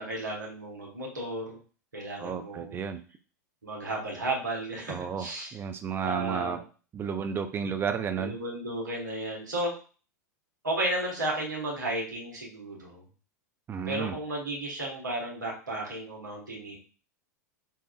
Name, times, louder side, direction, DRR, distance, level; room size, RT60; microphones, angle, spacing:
voice 1, 0.0-1.6 1.9-2.8 3.6-5.6 6.0-6.6 8.2-9.7 10.6-13.0 13.8-16.8, right 1 dB, 85° right, -2 dB, 1.3 m, -33 dB
voice 2, 2.2-3.0 4.9-6.6 6.9-8.3 13.7-14.2, right 6 dB, 25° right, 8 dB, 0.4 m, -32 dB
5.5 x 2.5 x 2.3 m, 0.37 s
figure-of-eight pair, 95°, 10 cm